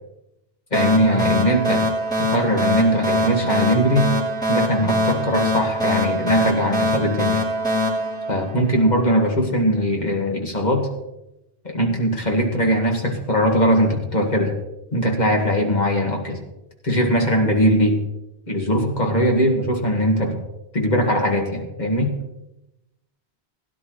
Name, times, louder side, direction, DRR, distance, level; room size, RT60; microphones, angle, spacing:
voice 1, 0.7-1.9 2.2-4.1 4.5-7.4 8.3-10.9 11.6-14.5 14.9-16.4 16.8-18.0 18.5-20.4 20.7-22.1, equal, 40° left, 1 dB, 2.1 m, -20 dB
sound 1, 0.7-9.1, equal, 5° left, 4.0 m, -23 dB
17.0 x 10.5 x 3.2 m, 0.90 s
omnidirectional pair, 1.1 m